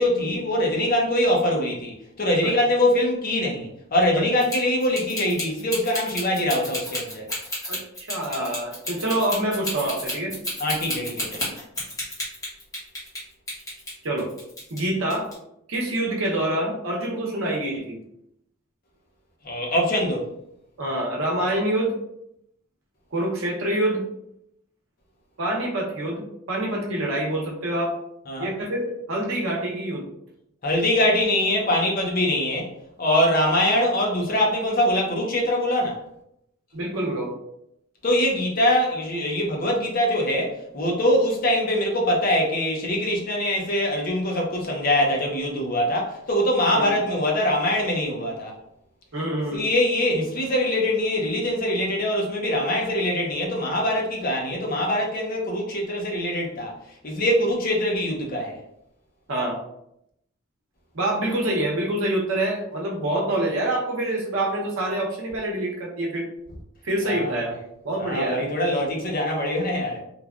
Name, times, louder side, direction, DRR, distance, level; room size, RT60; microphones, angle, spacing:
voice 1, 0.0-7.3 10.6-11.5 19.4-20.3 28.3-28.5 30.6-32.7 33.0-36.0 38.0-48.6 49.5-56.7 57.0-58.6 67.0-67.4 68.0-70.0, left 1 dB, 45° left, 0.6 m, -23 dB
sound 1, 4.4-13.2 13.5-14.8 15.1-15.3, left 1 dB, 15° left, 1.0 m, -31 dB
voice 2, 7.7-10.4 14.0-14.3 14.7-15.3 15.7-18.0 20.8-22.0 23.1-24.0 25.4-28.0 28.4-30.0 36.7-37.3 46.8-47.0 49.1-49.6 59.3-59.6 60.9-66.3 66.8-67.6 67.8-68.4, right 1 dB, 80° right, 0.8 m, -26 dB
3.2 x 2.2 x 2.4 m
head